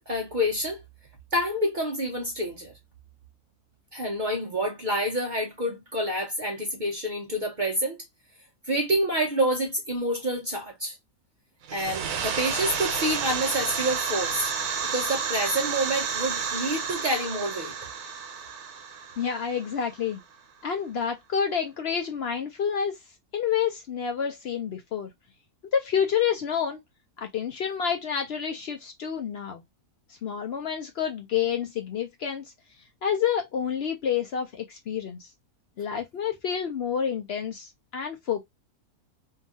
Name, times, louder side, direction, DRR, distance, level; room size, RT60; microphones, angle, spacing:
voice 1, 0.1-0.8 1.3-2.7 3.9-8.0 8.7-11.0 11.7-14.5 14.8-17.7, equal, 50° right, 0.6 m, -28 dB
sound 1, 11.6-20.2, right 6 dB, 80° right, 1.2 m, -31 dB
voice 2, 19.2-20.2 20.6-23.0 23.3-25.1 25.7-26.8 27.2-29.6 30.2-32.4 33.0-35.3 35.8-38.4, left 7 dB, 60° left, 0.6 m, -28 dB
2.8 x 2.4 x 2.6 m
omnidirectional pair, 1.6 m